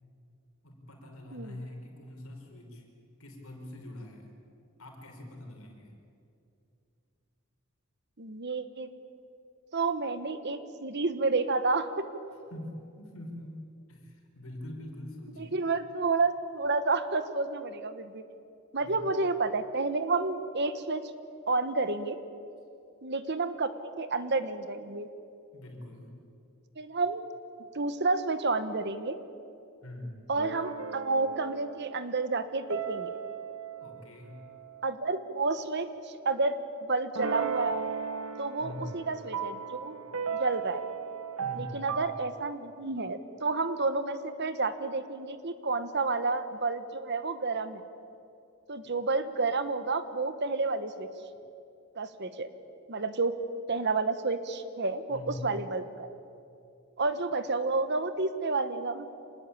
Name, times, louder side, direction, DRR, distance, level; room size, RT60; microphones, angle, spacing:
voice 1, 0.6-2.8 3.2-4.3 4.8-6.0 12.5-13.6 13.9-15.6 18.8-19.3 25.5-26.2 29.8-30.2 33.8-34.4 38.6-38.9 41.4-42.0 55.1-55.6, left 1 dB, 70° left, 2 dB, 4.9 m, -43 dB
voice 2, 8.2-8.9 9.7-12.0 15.4-18.2 18.7-21.0 21.5-22.2 23.0-25.1 26.8-27.2 27.7-29.2 30.3-33.1 34.8-36.6 36.8-37.8 38.4-40.0 40.4-40.8 41.5-47.8 48.7-51.1 52.0-52.5 52.9-53.3 53.7-56.1 57.0-59.1, right 3 dB, 50° right, 11 dB, 1.3 m, -30 dB
sound 1, 30.4-34.9 37.1-42.2, right 6 dB, 75° right, 1.5 m, -36 dB
26.5 x 19.5 x 8.7 m, 2.6 s
head